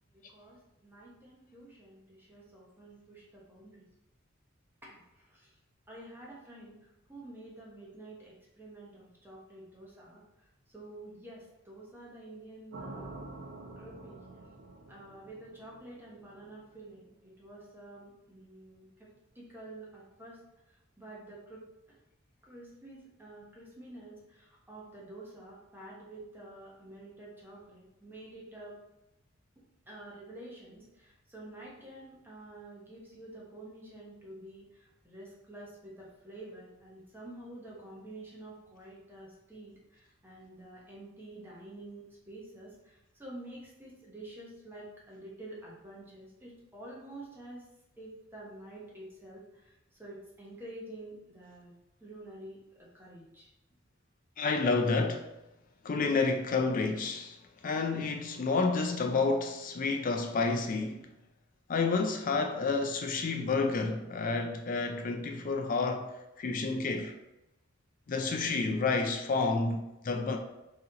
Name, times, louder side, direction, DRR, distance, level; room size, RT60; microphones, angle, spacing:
voice 1, 0.1-3.8 4.8-5.5 5.9-6.8 7.1-10.2 10.7-13.1 13.8-14.2 14.9-18.9 19.3-20.4 21.0-22.0 22.4-28.8 29.9-42.9 43.2-47.6 48.0-49.4 50.0-51.7 52.0-52.6 52.9-53.5, right 1 dB, 10° right, 0.9 m, -49 dB
sound 1, 12.7-16.8, right 2 dB, 80° right, 0.8 m, -47 dB
voice 2, 54.4-55.3 55.8-57.4 57.6-61.1 61.7-67.2 68.1-70.4, left 4 dB, 45° left, 0.4 m, -30 dB
4.1 x 2.9 x 3.7 m
head